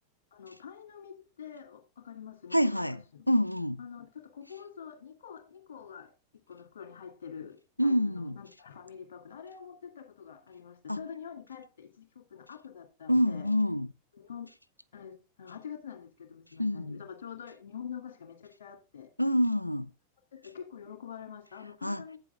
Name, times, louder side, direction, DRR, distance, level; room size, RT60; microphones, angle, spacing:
voice 1, 0.3-2.9 3.8-4.1 4.3-6.1 6.5-13.5 14.2-14.5 14.9-19.1 20.4-22.2, left 7 dB, 60° left, 2.1 m, -46 dB
voice 2, 2.5-3.8 7.8-8.4 10.9-11.0 13.1-13.9 16.6-17.0 19.2-19.9 21.8-22.0, equal, 90° left, 0.3 m, -27 dB
8.5 x 7.6 x 3.6 m
figure-of-eight pair, 90°, 0 cm